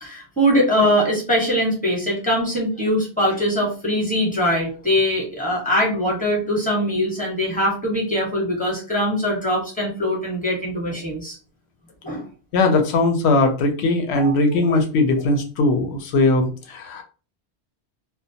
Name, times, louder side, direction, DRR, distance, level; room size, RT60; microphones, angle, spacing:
voice 1, 0.0-11.4 12.0-12.2 14.1-14.3, equal, 10° left, -3 dB, 0.8 m, -22 dB
voice 2, 12.5-17.0, left 2 dB, 80° left, 6 dB, 0.8 m, -19 dB
2.2 x 2.1 x 2.7 m, 0.36 s
omnidirectional pair, 1.1 m